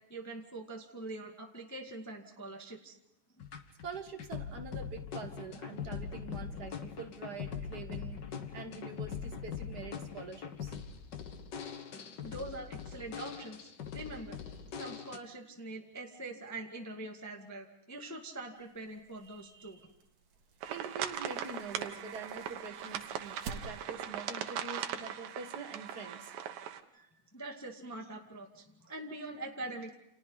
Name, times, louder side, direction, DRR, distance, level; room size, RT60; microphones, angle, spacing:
voice 1, 0.1-3.0 3.4-3.5 12.2-14.4 14.7-19.8 20.6-21.0 26.9-30.0, right 2 dB, 10° left, 1 dB, 1.1 m, -44 dB
sound 1, 3.4-15.2, left 7 dB, 60° left, 1.1 m, -42 dB
voice 2, 3.8-8.2 8.5-10.8 20.7-26.3, right 4 dB, 45° right, 5 dB, 1.4 m, -45 dB
sound 2, 18.5-24.1, right 5 dB, 70° right, 3.3 m, -51 dB
sound 3, 20.6-26.8, right 9 dB, 85° right, 2.9 m, -40 dB
30.0 x 28.5 x 4.0 m, 0.77 s
omnidirectional pair, 3.9 m